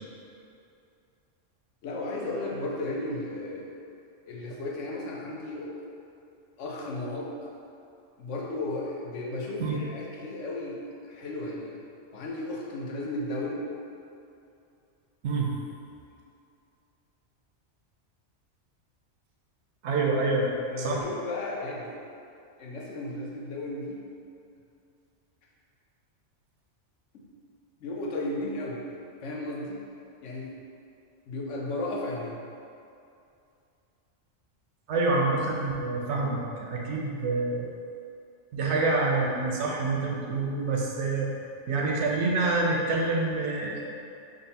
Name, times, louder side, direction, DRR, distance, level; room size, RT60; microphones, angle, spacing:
voice 1, 1.8-3.7 4.3-5.8 6.6-7.3 8.2-11.8 12.1-13.7 20.7-22.0 22.6-24.0 27.1-27.2 27.8-28.8 29.2-29.8 30.2-30.5 31.3-32.5, left 2 dB, 85° left, -3 dB, 1.0 m, -34 dB
voice 2, 15.2-15.5 19.8-20.5 20.8-21.0 34.9-37.7 38.5-41.3 41.7-44.0, right 3 dB, 70° right, -2 dB, 0.8 m, -27 dB
3.8 x 2.1 x 4.0 m, 2.6 s
omnidirectional pair, 1.2 m